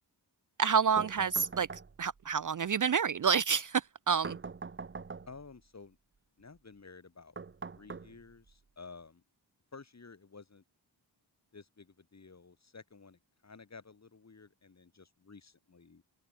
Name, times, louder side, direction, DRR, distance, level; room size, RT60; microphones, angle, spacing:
voice 1, 0.6-1.7 2.0-4.4, right 6 dB, 50° right, 0.5 m, -28 dB
sound 1, 1.0-2.2 4.2-5.5 7.4-8.5, right 4 dB, 30° right, 0.8 m, -44 dB
voice 2, 5.3-6.0 6.4-7.4 7.7-9.2 9.7-10.6 11.5-16.0, left 4 dB, 40° left, 2.3 m, -53 dB
open air
wide cardioid pair, 135°, 43 cm